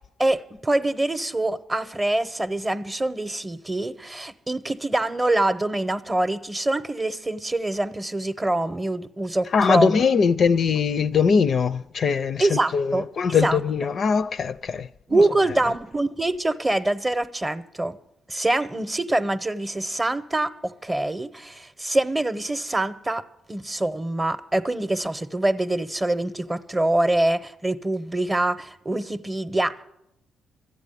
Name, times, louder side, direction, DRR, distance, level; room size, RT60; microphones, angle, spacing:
voice 1, 0.2-10.0 12.4-13.6 15.1-18.0 18.3-23.2 23.5-29.8, right 2 dB, 20° right, 0.7 m, -25 dB
voice 2, 9.4-15.7, left 6 dB, 55° left, 0.4 m, -22 dB
14.0 x 8.2 x 9.8 m
cardioid pair, 90°, 0 cm